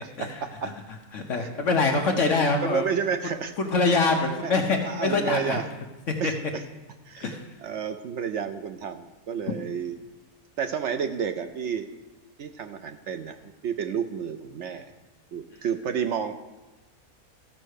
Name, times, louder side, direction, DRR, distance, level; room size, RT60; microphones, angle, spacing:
voice 1, 0.0-0.7 1.3-1.6 2.1-2.2 2.6-3.5 4.4-5.7 6.2-6.6 7.0-10.0 10.6-11.9 12.4-14.9 15.3-16.3, right 7 dB, 65° right, 8 dB, 0.8 m, -31 dB
voice 2, 1.1-2.8 3.6-5.6 6.2-6.3 7.2-7.4, left 3 dB, 60° left, 3 dB, 1.2 m, -24 dB
13.5 x 5.5 x 6.4 m, 1.1 s
omnidirectional pair, 1.6 m